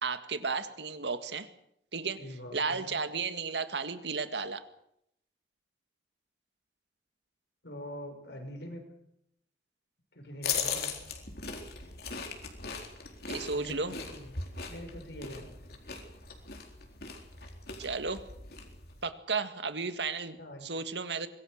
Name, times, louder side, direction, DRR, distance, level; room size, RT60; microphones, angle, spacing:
voice 1, 0.0-1.5 1.9-2.2 2.5-4.6 13.3-13.9 17.8-18.2 19.0-20.4 20.6-21.3, right 4 dB, 80° right, 10 dB, 2.0 m, -33 dB
voice 2, 2.2-2.9 7.6-8.8 10.1-11.0 13.5-14.4 14.7-15.7 20.4-20.7, equal, 75° left, 4 dB, 6.3 m, -44 dB
sound 1, 10.4-19.0, left 5 dB, 60° left, 4.2 m, -39 dB
25.0 x 21.5 x 6.6 m, 0.75 s
head